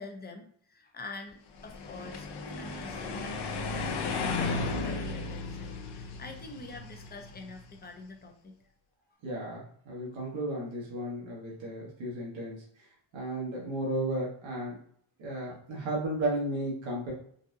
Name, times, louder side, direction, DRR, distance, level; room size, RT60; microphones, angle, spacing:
voice 1, 0.0-2.3 2.6-8.5, left 3 dB, 20° left, 3 dB, 0.7 m, -45 dB
sound 1, 1.6-7.7, left 3 dB, 65° left, 0.7 m, -35 dB
voice 2, 9.2-12.6 13.1-14.7 15.2-17.1, right 1 dB, 85° right, -4 dB, 1.3 m, -34 dB
4.0 x 2.5 x 2.6 m, 0.62 s
cardioid pair, 110°, 45 cm